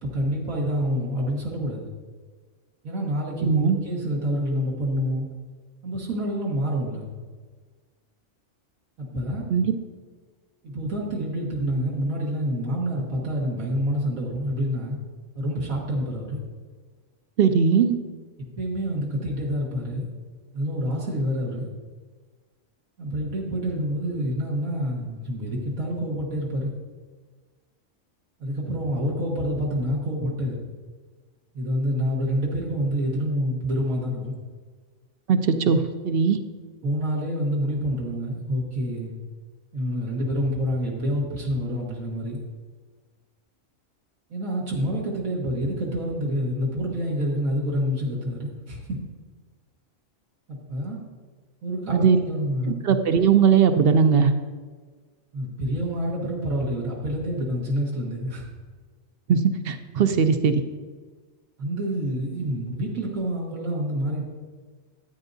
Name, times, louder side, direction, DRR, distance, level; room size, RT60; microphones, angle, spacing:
voice 1, 0.0-1.9 2.8-5.3 5.8-7.1 9.0-9.4 10.6-15.0 15.3-16.4 18.4-20.1 20.5-21.7 23.0-26.7 28.4-30.6 31.5-34.3 36.8-39.1 39.7-42.4 44.3-49.0 50.5-51.0 51.6-52.8 55.3-58.4 61.6-64.2, equal, 90° right, -3 dB, 1.8 m, -27 dB
voice 2, 3.4-3.8 9.5-9.7 17.4-17.9 35.3-36.4 51.9-52.2 52.8-54.3 59.3-60.5, right 6 dB, 60° right, 9 dB, 0.6 m, -19 dB
13.0 x 9.0 x 2.7 m, 1.4 s
omnidirectional pair, 1.4 m